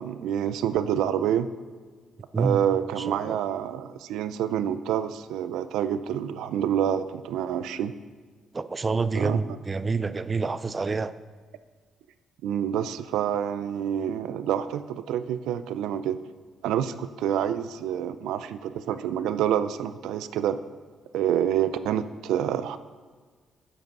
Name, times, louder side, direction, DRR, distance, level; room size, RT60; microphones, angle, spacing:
voice 1, 0.0-1.5 2.4-7.9 9.2-9.4 12.4-16.2 16.6-20.6 21.1-22.8, right 10 dB, 90° right, 13 dB, 0.4 m, -27 dB
voice 2, 3.1-3.4 8.5-11.1, right 4 dB, 30° right, 14 dB, 0.4 m, -27 dB
9.8 x 7.8 x 5.3 m, 1.5 s
cardioid pair, 90°, 0 cm